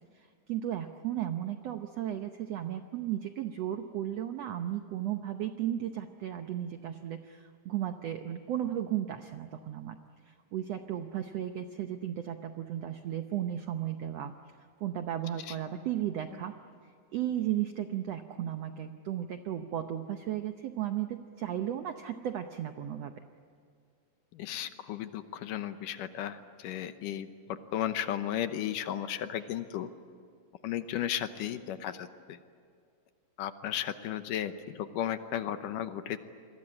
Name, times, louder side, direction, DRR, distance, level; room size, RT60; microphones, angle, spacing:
voice 1, 0.1-10.0 10.3-14.3 14.8-16.5 17.1-23.1, right 11 dB, 75° right, 7 dB, 1.5 m, -35 dB
voice 2, 24.3-29.9 30.6-32.4 33.4-36.2, left 10 dB, 75° left, 10 dB, 2.4 m, -35 dB
28.0 x 22.0 x 8.7 m, 2.2 s
omnidirectional pair, 4.1 m